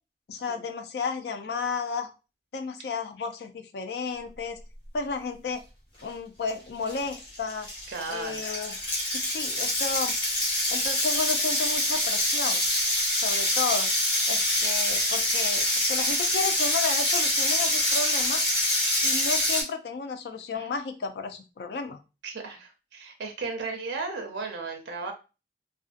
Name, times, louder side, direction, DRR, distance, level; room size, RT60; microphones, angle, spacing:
voice 1, 0.3-2.1 2.5-4.6 4.9-5.6 6.0-7.7 8.1-8.8 9.1-10.1 10.7-12.6 13.2-13.9 14.3-18.4 19.0-22.0, left 4 dB, 70° left, 7 dB, 0.4 m, -32 dB
sound 1, 6.5-6.6 6.9-19.6, left 1 dB, 30° left, 0.8 m, -25 dB
voice 2, 7.9-8.4 20.5-20.7 22.2-25.1, right 4 dB, 90° right, 4 dB, 0.5 m, -35 dB
2.4 x 2.2 x 2.4 m, 0.30 s
head